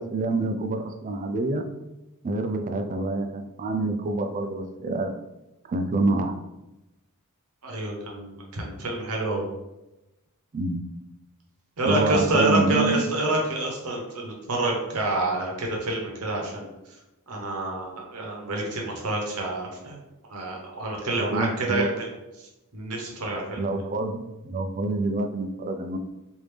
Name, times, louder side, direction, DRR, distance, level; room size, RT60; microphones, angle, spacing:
voice 1, 0.0-1.7 2.2-5.1 5.7-6.4 10.5-10.8 11.8-13.1 21.2-21.9 23.6-26.0, right 2 dB, 35° right, 5 dB, 0.4 m, -27 dB
voice 2, 7.6-9.4 11.8-16.7 17.3-20.0 20.3-22.1 22.4-23.7, right 2 dB, 75° right, -1 dB, 0.9 m, -28 dB
3.3 x 2.6 x 3.2 m, 0.98 s
head